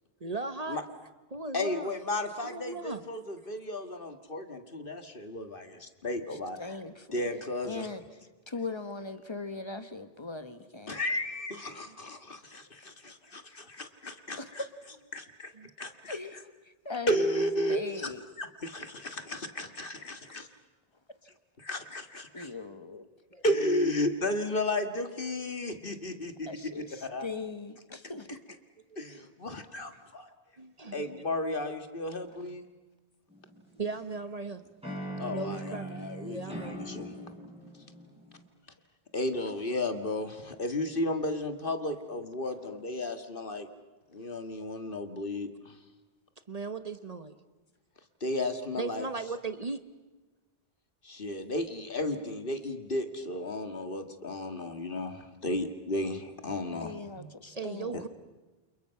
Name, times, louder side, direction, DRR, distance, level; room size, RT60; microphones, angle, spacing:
voice 1, 0.2-0.8 1.3-1.9 2.4-3.0 11.7-11.9 15.6-15.7 23.3-23.4 30.6-31.1 33.8-34.6 35.3-36.8 46.5-47.4 48.8-49.8 57.5-58.1, right 3 dB, 40° right, 10 dB, 1.1 m, -37 dB
voice 2, 1.5-6.6 7.1-7.9 10.9-14.6 15.1-15.5 15.8-16.2 17.1-18.1 18.4-20.5 21.6-22.5 23.4-26.5 27.0-27.3 29.0-30.3 30.9-32.6 35.2-37.1 39.1-43.7 44.1-45.8 48.2-49.1 51.0-57.3 57.9-58.0, left 1 dB, 60° left, 7 dB, 2.1 m, -33 dB
voice 3, 6.6-8.0 8.5-11.0 13.6-13.7 14.4-14.6 16.1-16.4 16.6-17.3 17.7-18.3 21.2-21.3 22.3-23.1 26.4-28.4 42.2-42.3 42.7-42.8 56.8-58.1, left 3 dB, 25° left, 9 dB, 1.5 m, -40 dB
sound 1, 33.3-34.2 34.8-38.5, right 1 dB, 5° right, 6.9 m, -41 dB
29.0 x 28.5 x 5.8 m, 1.2 s
omnidirectional pair, 1.0 m